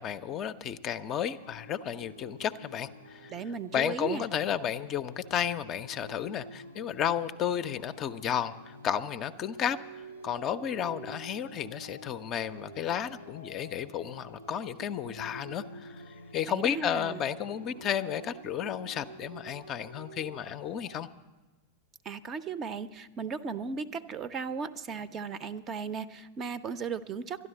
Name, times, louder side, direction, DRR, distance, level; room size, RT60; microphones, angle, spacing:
voice 1, 0.0-3.3 3.7-16.0 16.3-21.1, left 9 dB, 35° left, 12 dB, 0.4 m, -33 dB
sound 1, 1.1-21.0, right 1 dB, 90° right, 0.7 m, -49 dB
voice 2, 3.3-4.2 16.5-17.3 22.0-27.5, right 5 dB, 30° right, 15 dB, 0.5 m, -36 dB
12.5 x 11.0 x 7.7 m, 1.2 s
figure-of-eight pair, 90°, 0 cm